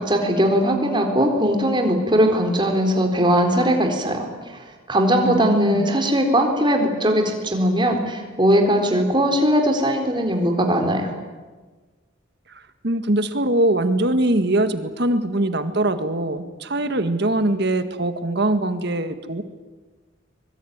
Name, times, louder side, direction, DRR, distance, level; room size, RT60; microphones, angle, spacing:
voice 1, 0.0-4.3 4.9-11.1, equal, 25° right, 3 dB, 3.9 m, -19 dB
voice 2, 5.2-5.9 12.5-19.4, right 1 dB, 55° right, 9 dB, 1.8 m, -22 dB
24.0 x 22.5 x 9.6 m, 1.3 s
head